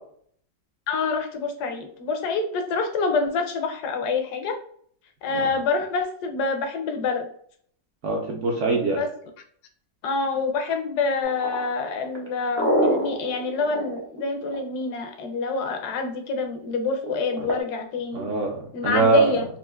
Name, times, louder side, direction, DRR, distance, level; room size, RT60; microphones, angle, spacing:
voice 1, 0.9-4.6 5.2-7.3 8.9-9.1 10.0-18.3 18.7-19.5, left 4 dB, 70° left, 5 dB, 1.0 m, -26 dB
voice 2, 8.0-9.0 18.1-19.3, right 4 dB, 70° right, 0 dB, 0.7 m, -23 dB
sound 1, 11.3-14.9 17.0-17.6, right 1 dB, 25° right, 0.5 m, -25 dB
4.3 x 2.4 x 2.2 m, 0.62 s
omnidirectional pair, 1.9 m